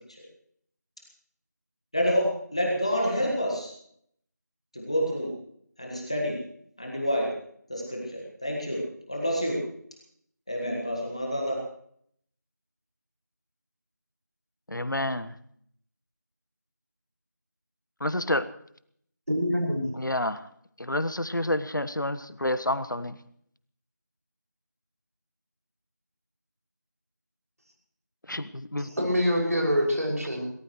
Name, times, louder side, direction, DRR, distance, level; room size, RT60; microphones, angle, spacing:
voice 1, 1.9-3.7 4.7-5.3 5.8-6.4 6.8-7.3 7.7-8.8 9.1-9.6 10.5-11.6, equal, 20° left, -1 dB, 1.7 m, -28 dB
voice 2, 14.7-15.3 18.0-18.5 20.0-20.4 20.8-23.2 28.3-28.9, left 1 dB, 85° left, 13 dB, 1.2 m, -29 dB
voice 3, 19.3-19.9 28.8-30.4, equal, 50° right, -1 dB, 6.3 m, -25 dB
22.5 x 19.0 x 3.2 m, 0.66 s
figure-of-eight pair, 180°, 10 cm